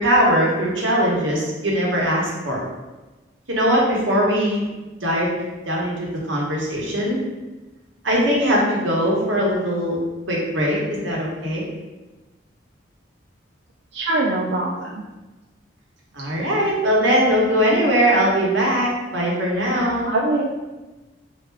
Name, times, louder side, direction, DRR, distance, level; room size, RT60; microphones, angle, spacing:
voice 1, 0.0-2.6 3.5-4.6 5.0-5.3 5.7-7.2 8.0-10.0 10.3-11.6 16.1-20.1, equal, 80° right, -3 dB, 0.9 m, -20 dB
voice 2, 13.9-15.0 20.1-20.4, right 2 dB, 60° right, -2 dB, 0.3 m, -23 dB
3.3 x 2.5 x 3.3 m, 1.1 s
head